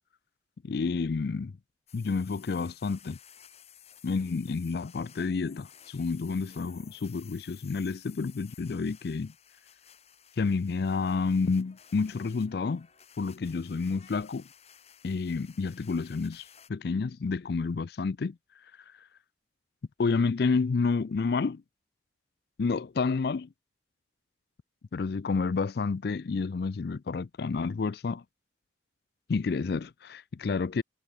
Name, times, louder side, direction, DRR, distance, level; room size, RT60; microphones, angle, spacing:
voice 1, 0.6-1.5 1.9-3.2 4.0-9.3 10.4-12.9 13.2-14.5 15.0-18.4 20.0-21.6 22.6-23.5 24.9-28.2 29.3-30.8, left 4 dB, 55° left, 0.4 m, -29 dB
sound 1, 1.9-16.7, left 9 dB, 35° left, 5.0 m, -55 dB
head